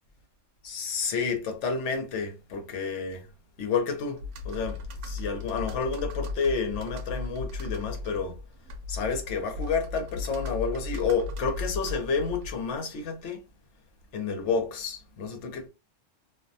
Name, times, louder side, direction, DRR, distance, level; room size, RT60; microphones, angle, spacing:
voice 1, 0.6-3.3 3.6-8.4 8.9-13.4 14.1-15.7, left 5 dB, 70° left, 1.0 m, -30 dB
Computer keyboard, 4.2-12.8, left 3 dB, 75° right, 0.9 m, -36 dB
2.5 x 2.2 x 2.6 m
omnidirectional pair, 1.3 m